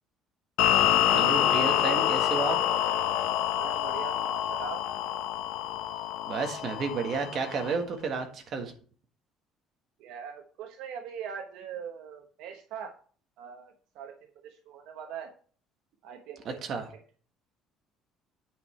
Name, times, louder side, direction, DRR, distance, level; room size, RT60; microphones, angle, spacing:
sound 1, 0.6-7.8, left 11 dB, 90° left, 1.0 m, -27 dB
voice 1, 1.1-2.6 6.3-8.7 16.6-16.9, right 4 dB, 40° right, 4 dB, 1.6 m, -31 dB
voice 2, 3.6-4.8 10.0-12.9 13.4-15.3 16.0-16.6 16.9-17.0, right 7 dB, 70° right, 4 dB, 1.2 m, -41 dB
9.3 x 5.5 x 4.3 m, 0.43 s
cardioid pair, 175°, 0 cm